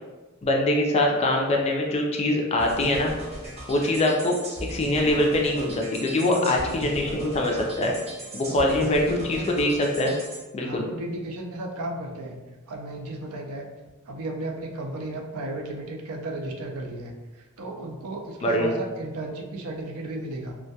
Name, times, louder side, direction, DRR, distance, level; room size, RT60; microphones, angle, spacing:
voice 1, 0.4-3.1 3.7-4.4 4.7-7.9 8.3-10.1 10.5-10.9 18.4-18.7, left 1 dB, 30° left, 0 dB, 0.3 m, -23 dB
sound 1, 2.6-10.4, right 1 dB, 30° right, 0.5 m, -38 dB
voice 2, 6.2-6.5 6.8-7.4 8.5-9.5 10.6-12.4 12.7-13.7 14.1-20.5, right 1 dB, 80° right, 1 dB, 0.4 m, -35 dB
2.2 x 2.1 x 2.7 m, 1.2 s
head